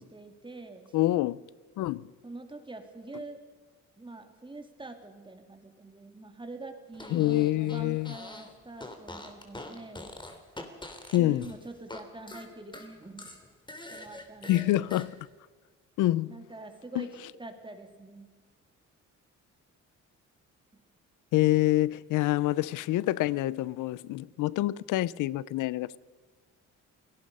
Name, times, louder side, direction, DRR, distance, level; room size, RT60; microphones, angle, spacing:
voice 1, 0.0-1.0 2.2-3.4 4.0-10.2 11.2-13.3 13.9-14.9 16.3-17.1 17.4-18.3 20.7-20.8, right 2 dB, 15° right, 3.0 m, -45 dB
voice 2, 0.9-1.4 1.8-2.1 7.1-8.1 11.1-11.5 14.5-15.1 16.0-16.3 17.0-17.1 21.3-26.0, left 16 dB, 85° left, 0.6 m, -26 dB
Fart, 6.9-8.5 8.8-12.0 12.3-15.1, left 1 dB, 15° left, 3.1 m, -44 dB
28.5 x 18.0 x 5.5 m
cardioid pair, 90°, 30 cm